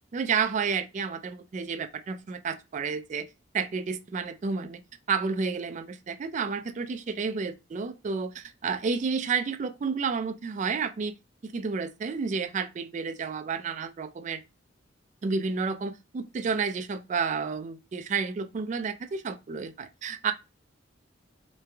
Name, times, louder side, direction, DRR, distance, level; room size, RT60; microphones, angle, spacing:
voice 1, 0.1-3.3 3.5-4.8 5.1-11.1 11.4-14.4 15.2-20.3, right 5 dB, 40° right, 0.3 m, -30 dB
3.3 x 3.2 x 3.3 m
head